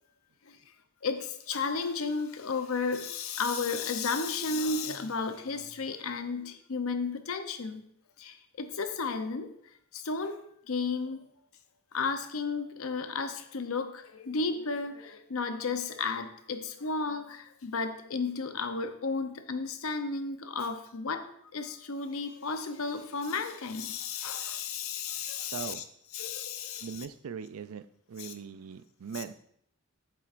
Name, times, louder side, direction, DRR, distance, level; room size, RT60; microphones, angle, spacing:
voice 1, 1.0-7.9 8.2-9.5 9.9-10.4 10.7-11.3 11.9-25.8 26.1-27.1 28.2-28.3 29.1-29.2, left 4 dB, 70° left, 0.7 m, -33 dB
voice 2, 25.5-25.8 26.8-29.4, right 6 dB, 75° right, 0.4 m, -40 dB
8.5 x 7.5 x 2.5 m
head